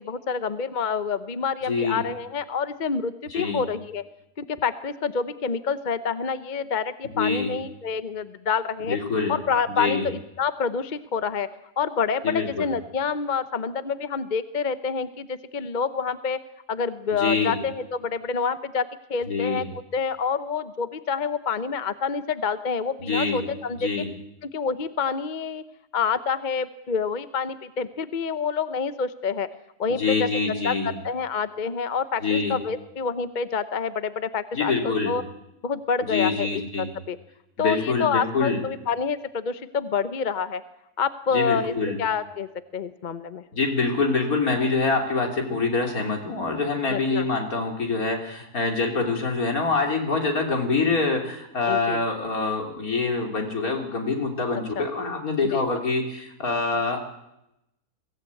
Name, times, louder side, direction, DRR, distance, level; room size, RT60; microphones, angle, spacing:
voice 1, 0.0-4.0 4.4-9.0 9.3-11.5 11.8-16.4 16.7-19.7 19.9-23.8 24.5-25.6 25.9-29.5 29.8-30.7 31.0-35.2 35.6-37.2 37.6-40.6 41.0-41.7 42.0-43.4 46.9-47.2 51.7-52.0 54.8-54.9 55.5-55.6, left 6 dB, 40° left, 12 dB, 0.8 m, -27 dB
voice 2, 1.6-2.0 3.3-3.6 7.1-7.5 8.9-9.4 9.8-10.1 12.2-12.6 17.1-17.6 19.3-19.7 23.1-23.4 23.8-24.1 29.9-31.0 32.2-32.6 34.5-35.2 36.1-37.0 37.6-38.6 41.3-42.0 43.5-57.0, left 4 dB, 70° left, 2 dB, 3.7 m, -25 dB
23.0 x 16.5 x 8.4 m, 0.86 s
omnidirectional pair, 1.6 m